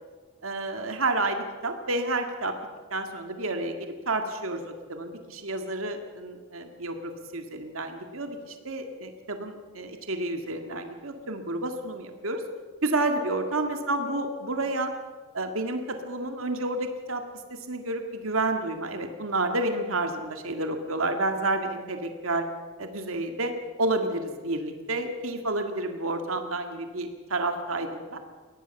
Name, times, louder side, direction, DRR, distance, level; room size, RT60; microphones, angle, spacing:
voice 1, 0.4-2.6 2.9-12.4 12.8-14.9 15.3-17.2 17.7-22.5 22.8-28.2, right 2 dB, 90° right, 6 dB, 2.0 m, -30 dB
22.0 x 17.5 x 7.1 m, 1.5 s
head